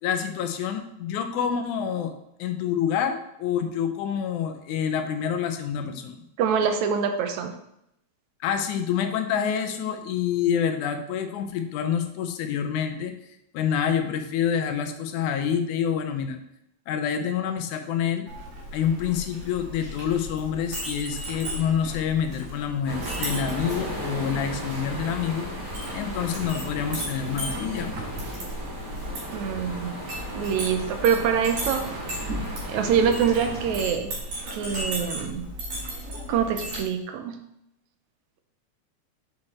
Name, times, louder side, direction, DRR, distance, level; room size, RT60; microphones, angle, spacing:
voice 1, 0.0-2.1 2.4-6.2 8.4-13.1 13.5-16.4 16.9-18.3 18.7-25.5 25.9-28.0, left 8 dB, 85° left, 6 dB, 2.2 m, -27 dB
voice 2, 6.4-7.5 29.3-30.0 30.3-31.8 32.7-34.1 34.5-35.5 36.1-37.4, right 7 dB, 75° right, 6 dB, 2.0 m, -25 dB
Chink clink, 18.3-36.8, equal, 60° right, 4.5 m, -36 dB
sound 1, 22.8-33.8, right 1 dB, 25° right, 2.2 m, -35 dB
7.7 x 4.8 x 4.2 m, 0.78 s
omnidirectional pair, 3.4 m